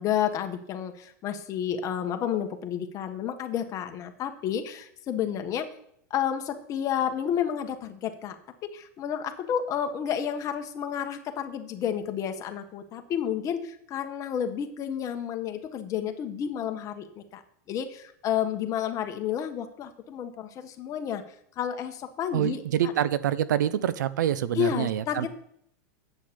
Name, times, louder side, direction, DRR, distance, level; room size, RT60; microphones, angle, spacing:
voice 1, 0.0-5.7 6.1-8.4 8.7-17.4 17.7-21.2 21.6-22.6 24.6-25.3, left 9 dB, 35° left, 6 dB, 1.3 m, -30 dB
voice 2, 22.3-25.3, right 10 dB, 90° right, 17 dB, 0.6 m, -26 dB
8.5 x 6.4 x 6.9 m, 0.69 s
supercardioid pair, 130°, 10 cm